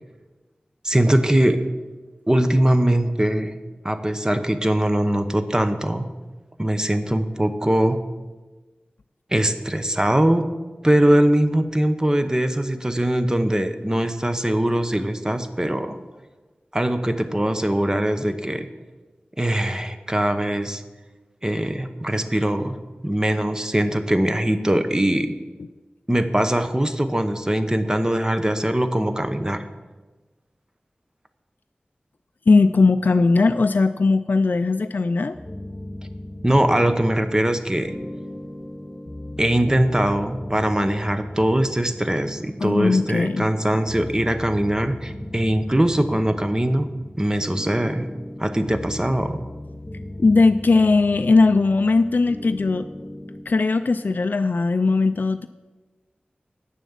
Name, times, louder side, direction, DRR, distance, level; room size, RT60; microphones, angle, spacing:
voice 1, 0.8-1.6 2.3-3.5 3.8-6.1 6.6-8.0 9.3-10.5 10.8-16.0 16.7-18.7 19.4-20.8 21.4-25.3 26.1-29.7 36.4-37.9 39.4-46.9 47.2-48.1 48.4-49.4, right 1 dB, 20° right, 9 dB, 0.9 m, -21 dB
voice 2, 32.5-35.4 42.6-43.5 50.2-52.9 53.5-55.5, left 3 dB, 60° left, 9 dB, 0.4 m, -18 dB
sound 1, 35.3-53.4, left 1 dB, 15° left, 2.3 m, -37 dB
9.3 x 7.1 x 7.2 m, 1.2 s
wide cardioid pair, 55°, 3 cm